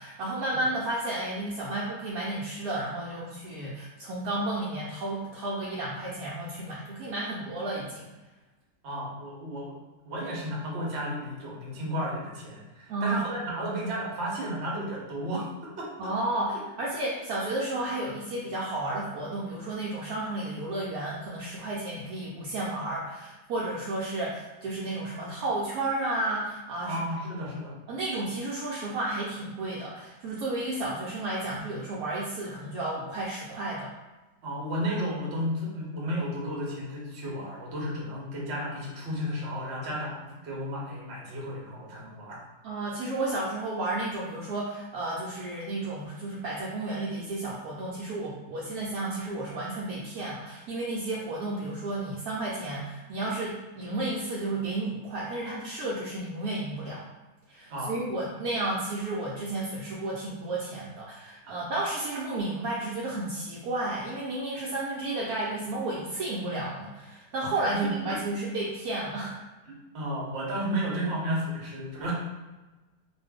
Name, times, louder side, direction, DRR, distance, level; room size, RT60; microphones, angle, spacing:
voice 1, 0.0-8.1 12.9-13.2 16.0-27.0 27.4-27.5 27.9-33.9 42.6-57.0 57.5-69.3, right 2 dB, 70° right, -5 dB, 1.0 m, -32 dB
voice 2, 8.8-9.8 10.0-16.1 26.8-27.8 34.4-42.4 57.7-57.9 61.5-61.6 67.7-68.2 69.7-72.1, equal, 50° right, -4 dB, 0.9 m, -33 dB
2.5 x 2.5 x 3.5 m, 1.1 s
omnidirectional pair, 1.7 m